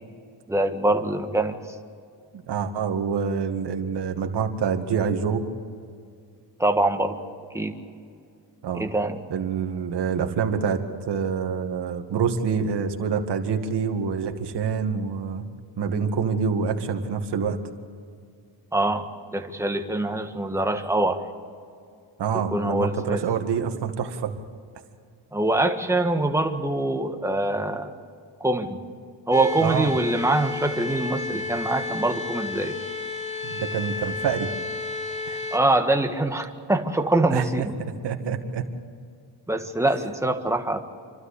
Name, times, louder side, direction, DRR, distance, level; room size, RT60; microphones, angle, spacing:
voice 1, 0.5-1.6 6.6-7.2 7.5-7.7 8.7-9.3 18.7-19.1 19.3-21.2 22.5-23.2 25.3-27.9 28.4-28.8 29.3-32.8 35.5-37.7 39.5-40.8, right 2 dB, 5° right, 5 dB, 1.6 m, -24 dB
voice 2, 2.3-5.4 8.6-8.9 9.3-10.8 11.1-15.4 15.8-17.6 22.2-24.3 29.6-29.9 33.4-34.5 35.3-35.4 37.3-38.7, right 6 dB, 55° right, 5 dB, 2.0 m, -26 dB
sound 1, 29.3-35.6, left 3 dB, 15° left, 2.4 m, -32 dB
28.0 x 12.5 x 8.4 m, 2.3 s
cardioid pair, 110°, 48 cm